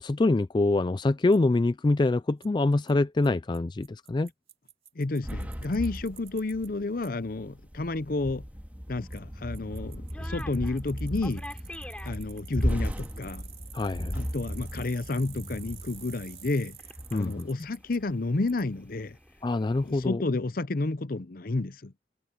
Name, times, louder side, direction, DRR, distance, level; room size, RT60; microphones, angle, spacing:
voice 1, 0.0-4.3 13.7-14.1 17.1-17.5 19.4-20.2, left 2 dB, 25° left, 0.4 m, -25 dB
Bicycle, 1.3-1.4 2.4-2.5 2.9-3.0 3.2-3.3 3.5-3.6 3.8-6.7 7.0-7.1 9.1-9.2 9.5-18.0 18.5-18.6, right 9 dB, 35° right, 2.3 m, -50 dB
voice 2, 5.0-8.4 8.9-11.5 12.0-13.5 14.1-16.8 17.1-19.2 19.8-21.9, left 2 dB, 55° left, 0.7 m, -31 dB
sound 1, 5.2-17.7 18.0-18.1 18.5-19.3 19.7-20.1, equal, 10° right, 1.9 m, -36 dB
sound 2, 9.7-9.8 10.0-10.8 11.2-12.6 12.9-13.0 13.3-13.4 16.8-17.1 17.6-19.9, left 1 dB, 5° left, 3.2 m, -45 dB
head